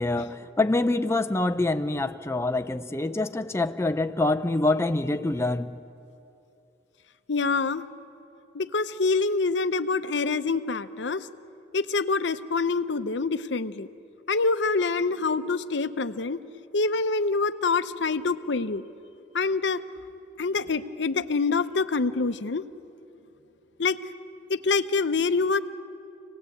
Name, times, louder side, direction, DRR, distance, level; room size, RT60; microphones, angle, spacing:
voice 1, 0.0-5.8, left 2 dB, 15° left, 8 dB, 0.5 m, -25 dB
voice 2, 7.3-7.8 8.5-11.3 11.7-13.9 14.3-16.4 16.7-18.8 19.3-19.8 20.4-22.6 23.8-24.0 24.5-25.6, left 4 dB, 75° left, 12 dB, 0.7 m, -26 dB
26.5 x 19.0 x 8.4 m, 2.8 s
head